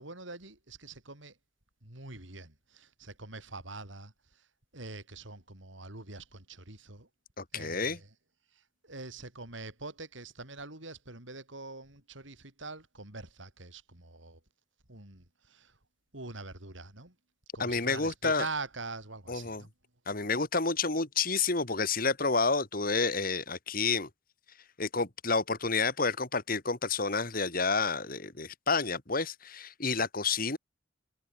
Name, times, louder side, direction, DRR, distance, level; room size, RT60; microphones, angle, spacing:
voice 1, 0.0-1.3 1.8-4.1 4.7-7.1 7.5-8.1 8.8-14.4 14.9-15.7 16.1-17.1 17.5-19.7, right 3 dB, 75° right, 5.8 m, -44 dB
voice 2, 7.4-8.0 17.6-18.5 19.3-19.6 20.1-24.1 24.8-30.6, left 4 dB, 45° left, 2.6 m, -29 dB
head